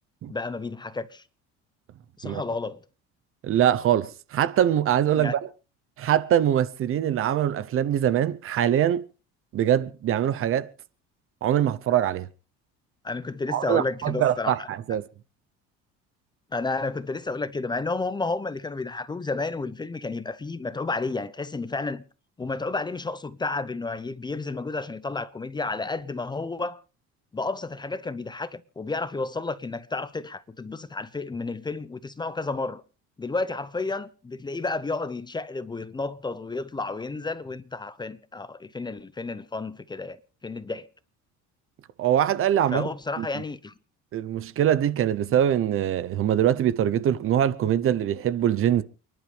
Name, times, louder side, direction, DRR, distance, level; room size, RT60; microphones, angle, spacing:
voice 1, 0.3-1.2 2.2-2.8 5.1-5.3 13.0-14.7 16.5-22.0 22.4-26.8 27.3-32.8 33.2-40.9 42.7-43.7, left 3 dB, 15° left, 0.7 m, -31 dB
voice 2, 3.4-5.4 6.0-9.0 9.5-10.7 11.4-12.3 13.5-15.0 42.0-42.9 43.2-43.3 44.1-48.8, right 10 dB, 45° right, 0.8 m, -23 dB
29.0 x 11.0 x 3.4 m
cardioid pair, 140°, 30 cm